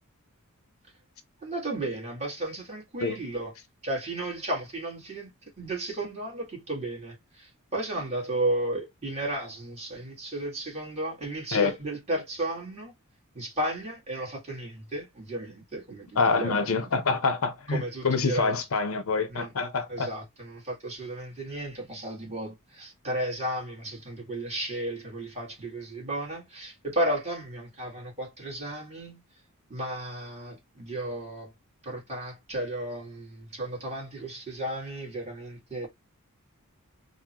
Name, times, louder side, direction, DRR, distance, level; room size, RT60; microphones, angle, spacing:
voice 1, 1.4-3.5 3.8-5.3 5.6-12.9 13.3-16.9 17.7-18.6 19.3-19.5 19.9-29.2 29.7-31.5 31.8-35.9, right 1 dB, 30° right, 1.6 m, -34 dB
voice 2, 16.2-20.1, left 4 dB, 65° left, 0.6 m, -26 dB
3.7 x 2.1 x 2.8 m
head